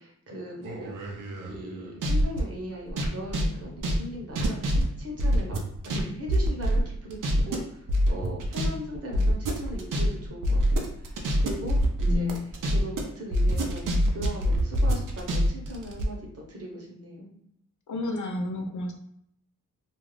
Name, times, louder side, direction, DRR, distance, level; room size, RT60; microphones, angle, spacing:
voice 1, 0.0-5.6 5.8-12.4 12.7-17.3, equal, 45° right, -1 dB, 1.0 m, -39 dB
sound 1, 0.6-2.4 2.9-6.0 6.3-7.6 7.9-8.7 8.9-13.0 13.3-16.0, equal, 70° right, 0.7 m, -25 dB
voice 2, 12.1-12.5 17.9-18.9, left 3 dB, 65° left, 4 dB, 0.6 m, -30 dB
2.5 x 2.4 x 3.2 m, 0.71 s
cardioid pair, 65°, 33 cm